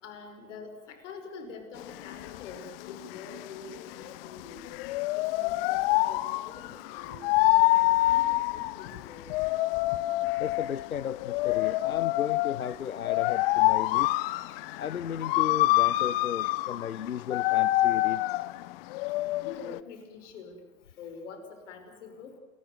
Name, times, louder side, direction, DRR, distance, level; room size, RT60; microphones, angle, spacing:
voice 1, 0.0-4.7 5.2-7.2 7.6-9.4 19.4-20.6 21.0-22.4, left 4 dB, 60° left, 7 dB, 5.6 m, -46 dB
sound 1, 1.8-19.8, left 18 dB, 45° left, 1.0 m, -27 dB
voice 2, 10.4-14.1 14.8-18.4, left 8 dB, 90° left, 18 dB, 0.7 m, -35 dB
29.5 x 14.5 x 8.0 m, 1.2 s
hypercardioid pair, 105°, 41 cm